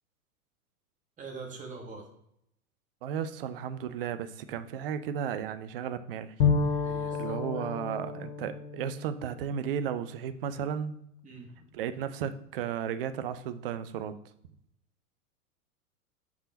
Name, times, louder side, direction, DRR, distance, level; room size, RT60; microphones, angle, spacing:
voice 1, 1.2-2.1 6.8-7.7 11.2-11.6, right 4 dB, 15° right, 0 dB, 1.4 m, -44 dB
voice 2, 3.0-6.3 7.1-11.0 11.7-14.1, right 8 dB, 40° right, 12 dB, 0.5 m, -34 dB
Bowed string instrument, 6.4-10.1, left 5 dB, 50° left, 1.2 m, -31 dB
5.5 x 4.8 x 3.9 m, 0.75 s
figure-of-eight pair, 100°, 44 cm